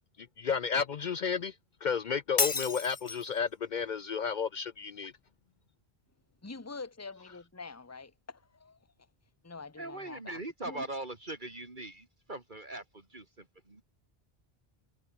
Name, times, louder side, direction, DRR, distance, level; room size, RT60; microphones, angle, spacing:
voice 1, 0.4-1.5 1.8-5.1, left 6 dB, 55° left, 0.7 m, -32 dB
Shatter, 2.4-3.4, left 4 dB, 30° left, 1.0 m, -31 dB
voice 2, 6.4-8.8 9.4-10.4 10.6-10.9, left 4 dB, 15° left, 1.2 m, -45 dB
voice 3, 9.8-13.8, right 2 dB, 50° right, 3.0 m, -41 dB
omnidirectional pair, 1.0 m